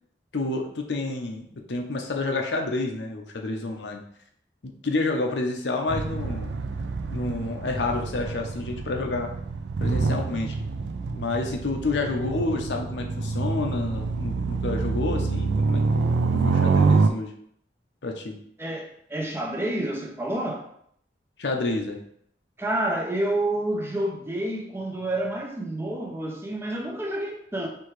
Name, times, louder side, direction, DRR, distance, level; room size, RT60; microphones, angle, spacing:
voice 1, 0.3-4.0 4.6-6.5 7.1-9.3 9.8-10.6 11.1-17.3 18.0-18.4 21.4-22.0, left 2 dB, 80° left, 2 dB, 0.7 m, -29 dB
sound 1, 5.9-17.1, right 4 dB, 85° right, 0.4 m, -26 dB
voice 2, 18.6-20.7 22.6-27.7, right 1 dB, 15° right, 1 dB, 0.5 m, -29 dB
4.5 x 3.4 x 3.2 m, 0.67 s
head